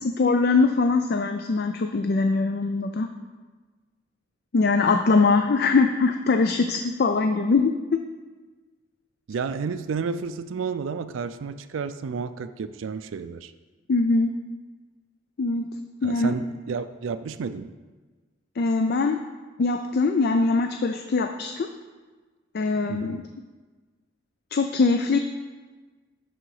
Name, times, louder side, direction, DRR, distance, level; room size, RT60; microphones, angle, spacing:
voice 1, 0.0-3.1 4.5-7.8 13.9-14.3 15.4-15.7 16.0-16.3 18.6-19.2 19.6-21.7 22.5-23.2 24.5-25.2, left 3 dB, 55° left, 6 dB, 0.4 m, -22 dB
voice 2, 9.3-13.5 16.0-17.7 22.9-23.2, right 5 dB, 90° right, 12 dB, 0.4 m, -31 dB
11.5 x 3.9 x 4.8 m, 1.3 s
head